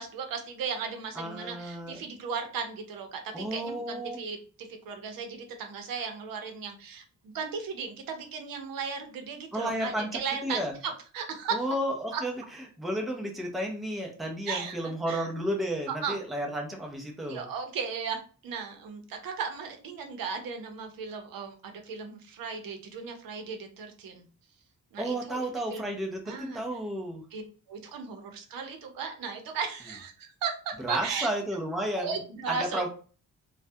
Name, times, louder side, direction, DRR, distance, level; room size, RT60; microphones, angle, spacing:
voice 1, 0.0-10.6 11.1-11.6 12.1-12.2 14.5-15.3 16.0-16.1 17.3-24.2 24.9-25.4 25.7-25.9 26.3-26.6 27.3-27.4 27.7-31.3 32.0-32.9, right 5 dB, 90° right, 5 dB, 0.6 m, -36 dB
voice 2, 1.1-2.0 3.3-4.2 9.5-10.8 11.5-12.3 12.8-17.5 25.0-27.2 30.8-32.2 32.5-32.9, right 1 dB, ahead, 0 dB, 0.4 m, -32 dB
2.3 x 2.1 x 2.6 m, 0.39 s
wide cardioid pair, 140°, 33 cm